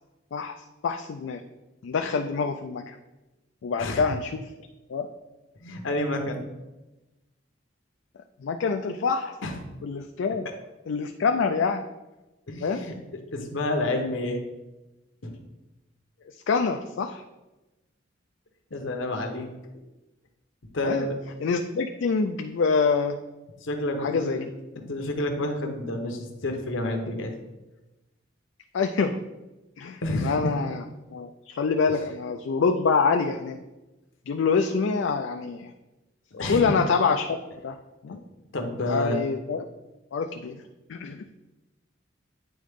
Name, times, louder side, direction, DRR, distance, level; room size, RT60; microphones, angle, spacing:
voice 1, 0.3-1.4 1.8-3.0 3.6-4.5 4.9-5.1 8.4-9.4 9.8-10.5 10.9-11.8 12.6-12.8 16.2-17.2 20.8-21.1 21.4-23.2 24.0-24.4 28.7-29.2 29.8-30.8 31.1-33.6 34.3-35.7 36.5-37.8 38.0-38.2 38.9-39.7 40.1-40.6 40.9-41.2, left 5 dB, 75° left, 6 dB, 0.4 m, -26 dB
voice 2, 5.6-6.4 9.4-9.5 12.5-12.9 13.3-14.4 15.2-15.4 18.7-19.5 20.7-21.1 23.6-24.4 24.7-27.3 30.0-30.5 36.3-36.8 38.1-38.2 38.5-39.2, left 1 dB, 90° left, 4 dB, 1.0 m, -29 dB
9.3 x 3.7 x 3.5 m, 1.1 s
head